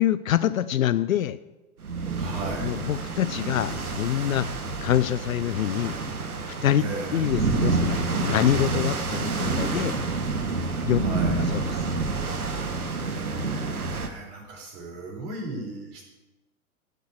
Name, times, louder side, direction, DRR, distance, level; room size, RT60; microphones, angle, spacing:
voice 1, 0.0-1.4 2.6-4.5 4.8-5.9 6.5-6.8 7.1-10.0 10.8-11.0 11.4-11.9, left 11 dB, 65° left, 14 dB, 0.6 m, -25 dB
sound 1, 1.8-14.1, right 3 dB, 80° right, 1.5 m, -28 dB
voice 2, 2.1-2.8 6.8-7.3 10.9-11.5 13.0-16.0, right 2 dB, 45° right, 0 dB, 4.9 m, -37 dB
15.5 x 6.6 x 6.5 m, 1.1 s
figure-of-eight pair, 100°, 43 cm